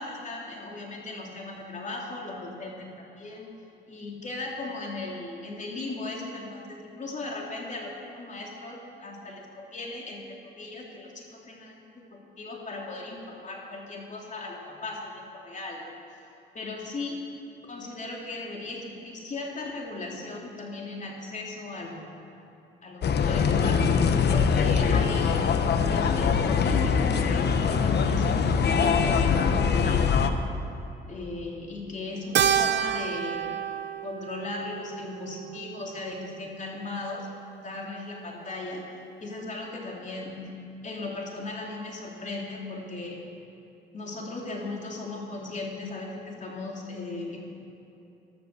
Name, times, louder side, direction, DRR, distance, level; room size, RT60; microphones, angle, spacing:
voice 1, 0.0-3.5 3.9-11.8 12.1-15.9 16.5-17.1 17.7-22.0 22.3-22.4 22.8-23.8 24.3-25.6 25.9-30.3 31.1-33.6 34.0-37.3 37.6-38.8 39.2-40.4 40.8-43.2 43.9-47.4, left 2 dB, 40° left, -1 dB, 3.3 m, -37 dB
sound 1, 23.0-30.3, left 6 dB, 55° left, 1.1 m, -23 dB
Keyboard (musical), 32.4-36.9, right 9 dB, 65° right, 0.7 m, -30 dB
14.5 x 12.0 x 6.9 m, 2.8 s
cardioid pair, 90°, 20 cm